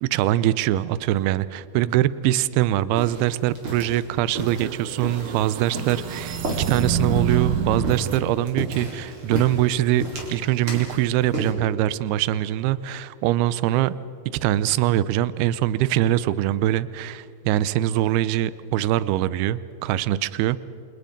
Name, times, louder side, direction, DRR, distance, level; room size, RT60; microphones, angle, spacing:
voice 1, 0.0-10.0 10.3-14.0 14.4-20.6, right 13 dB, 80° right, 17 dB, 2.4 m, -23 dB
sound 1, 2.9-11.5, right 2 dB, 30° right, 4.6 m, -34 dB
sound 2, 4.5-8.2, right 6 dB, 60° right, 2.3 m, -27 dB
29.0 x 28.5 x 5.3 m, 2.8 s
omnidirectional pair, 5.2 m